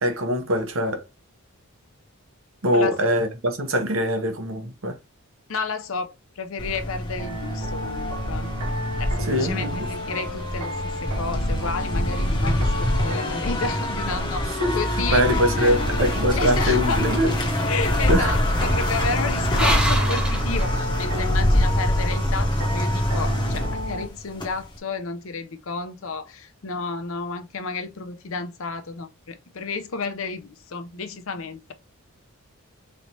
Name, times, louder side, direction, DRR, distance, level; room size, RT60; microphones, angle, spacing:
voice 1, 0.0-1.0 2.6-5.0 9.3-9.9 14.5-14.8 15.1-17.3 18.1-18.4, equal, 60° right, 0.9 m, -23 dB
voice 2, 5.5-8.5 9.0-14.5 14.7-15.8 16.4-17.0 17.6-31.7, left 4 dB, 65° left, 0.6 m, -31 dB
sound 1, 6.6-24.8, left 1 dB, 20° left, 0.9 m, -25 dB
sound 2, 7.2-24.1, equal, 90° right, 0.9 m, -34 dB
sound 3, 17.0-21.3, right 1 dB, 5° right, 0.7 m, -30 dB
4.1 x 3.3 x 2.7 m
head